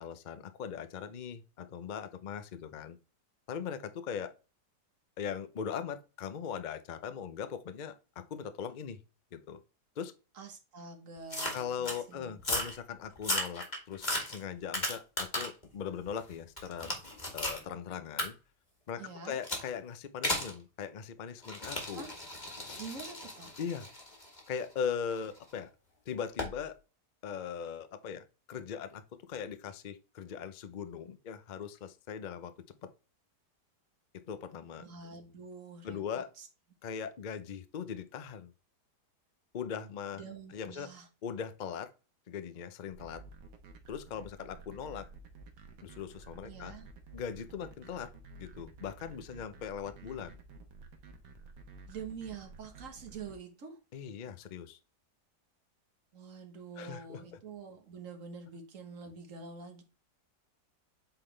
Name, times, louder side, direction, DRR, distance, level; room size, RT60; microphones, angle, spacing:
voice 1, 0.0-3.0 3.5-4.3 5.2-9.0 9.3-9.6 10.0-10.1 11.5-16.9 17.3-18.3 18.9-22.0 22.7-22.8 23.6-23.9 24.5-25.7 26.1-26.8 27.2-29.0 29.3-32.5 32.8-32.9 34.1-34.8 35.8-36.3 36.8-38.5 39.5-40.2 40.5-40.9 41.2-41.9 42.3-43.2 43.9-45.1 45.8-46.7 47.1-48.1 48.4-50.3 53.9-54.8 56.8-57.2, left 7 dB, 80° left, 0.4 m, -40 dB
voice 2, 10.3-12.4 19.0-19.4 21.9-22.1 22.8-23.5 34.8-36.5 40.1-41.1 46.4-46.9 51.9-53.8 56.1-59.8, right 5 dB, 50° right, 1.6 m, -46 dB
sound 1, 11.3-12.0 12.4-12.8 13.2-15.6 16.1-17.6 18.2-18.3 19.4-19.7 20.2-20.5 21.4-25.4 26.4-26.6, left 1 dB, 25° left, 1.8 m, -35 dB
sound 2, 42.9-53.3, right 3 dB, 80° right, 1.7 m, -51 dB
8.1 x 4.0 x 3.3 m
omnidirectional pair, 1.8 m